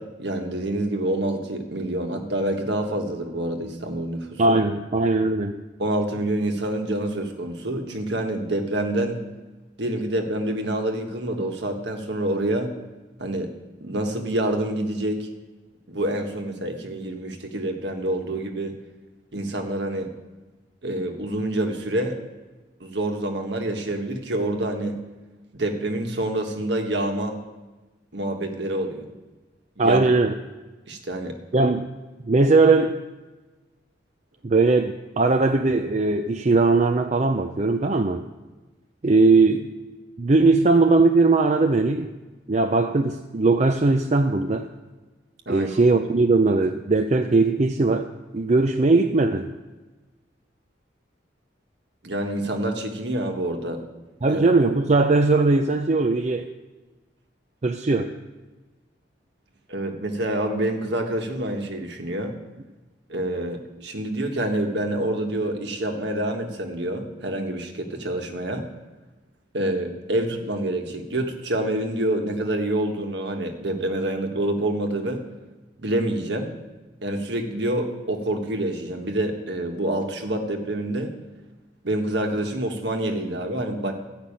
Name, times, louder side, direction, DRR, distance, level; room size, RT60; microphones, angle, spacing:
voice 1, 0.0-4.6 5.8-9.2 9.8-12.8 13.2-15.3 15.9-18.7 19.3-20.1 20.8-22.2 22.8-25.0 25.5-27.4 28.1-29.1 29.8-30.0 30.9-31.4 45.4-45.7 52.0-53.8 54.3-54.4 59.7-62.3 63.1-68.7 69.5-75.2 75.8-76.5 77.0-81.1 81.8-83.9, right 1 dB, 65° right, 3 dB, 1.5 m, -27 dB
voice 2, 4.4-5.6 29.8-30.3 31.5-31.9 32.3-33.0 34.4-38.2 39.0-39.7 40.2-42.1 42.5-44.7 45.5-48.1 48.3-49.5 54.2-56.5 57.6-58.1, right 3 dB, 35° right, 5 dB, 0.5 m, -19 dB
13.5 x 5.9 x 8.7 m, 1.2 s
head